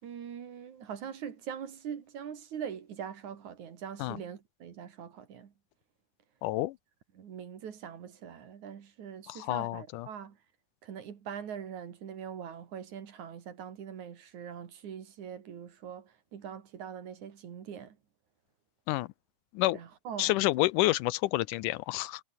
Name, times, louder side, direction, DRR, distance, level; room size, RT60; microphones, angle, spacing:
voice 1, 0.0-5.5 7.2-10.4 10.8-18.0 19.7-20.7, right 8 dB, 65° right, 3.6 m, -42 dB
voice 2, 6.4-6.8 9.3-10.1 18.9-19.1 19.5-19.8 20.2-22.2, left 18 dB, 80° left, 2.1 m, -29 dB
omnidirectional pair, 3.8 m